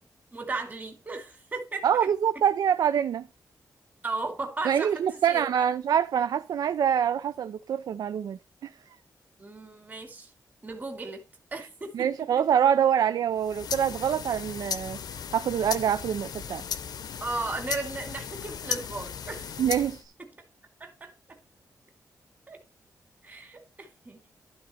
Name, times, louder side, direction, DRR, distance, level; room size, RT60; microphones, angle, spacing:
voice 1, 0.3-2.1 4.0-5.7 9.4-10.3 10.6-11.2 11.5-12.1 17.2-19.5 20.8-21.4 22.5-22.6 23.2-24.2, right 3 dB, 25° right, 2.2 m, -36 dB
voice 2, 1.8-3.3 4.6-8.7 11.9-15.0 15.3-16.6 19.6-20.1, right 9 dB, 75° right, 0.4 m, -25 dB
sound 1, 13.3-20.1, left 7 dB, 75° left, 0.7 m, -36 dB
11.5 x 4.0 x 4.2 m
wide cardioid pair, 125°, 7 cm